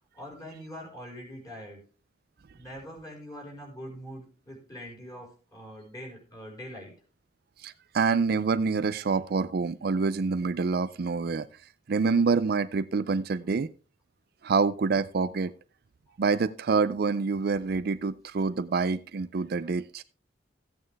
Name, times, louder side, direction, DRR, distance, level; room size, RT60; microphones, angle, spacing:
voice 1, 0.2-1.8 2.5-6.9, equal, 20° left, 4.9 m, -43 dB
voice 2, 7.6-11.5 11.9-13.7 14.4-15.5 16.2-20.0, right 4 dB, 55° right, 0.4 m, -26 dB
14.5 x 8.7 x 3.4 m
head